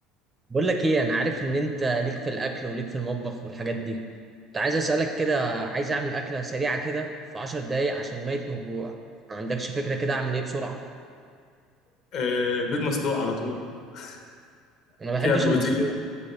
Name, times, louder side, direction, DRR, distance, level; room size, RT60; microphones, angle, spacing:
voice 1, 0.5-4.0 4.5-8.9 9.3-10.8 15.0-15.9, right 3 dB, 15° right, 5 dB, 0.5 m, -27 dB
voice 2, 12.1-13.6 13.9-14.2 15.2-15.9, left 4 dB, 50° left, 2 dB, 1.1 m, -26 dB
7.5 x 4.1 x 6.8 m, 2.2 s
cardioid pair, 140°, 0 cm